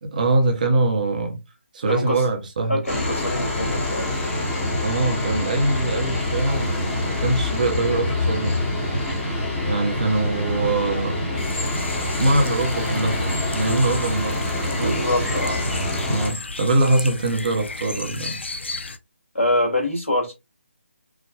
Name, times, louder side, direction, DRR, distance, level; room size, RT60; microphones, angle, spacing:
voice 1, 0.0-1.4 1.7-2.8 4.8-8.7 9.7-11.2 11.9-15.0 16.1-18.4, right 2 dB, 35° right, 1.0 m, -23 dB
voice 2, 1.9-2.2 2.7-4.2 13.6-14.0 14.7-15.7 19.3-20.3, left 1 dB, 75° left, 2.4 m, -25 dB
sound 1, 2.9-16.3, left 1 dB, 10° left, 1.1 m, -26 dB
sound 2, 11.4-19.0, left 2 dB, 60° left, 0.6 m, -34 dB
4.8 x 2.5 x 2.2 m
figure-of-eight pair, 150°, 7 cm